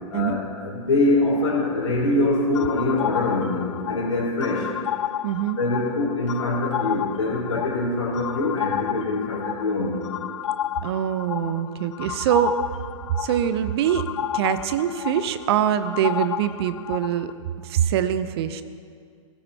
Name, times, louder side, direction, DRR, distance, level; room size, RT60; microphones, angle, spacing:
voice 1, 0.1-4.7 5.6-10.0, left 2 dB, 75° left, -9 dB, 4.6 m, -24 dB
sound 1, 2.5-17.3, left 11 dB, 60° left, 0.6 m, -32 dB
voice 2, 5.2-5.6 10.8-12.6 13.2-17.3 17.6-18.6, right 10 dB, 50° right, 12 dB, 0.8 m, -24 dB
21.0 x 16.5 x 2.9 m, 2.2 s
figure-of-eight pair, 110°, 17 cm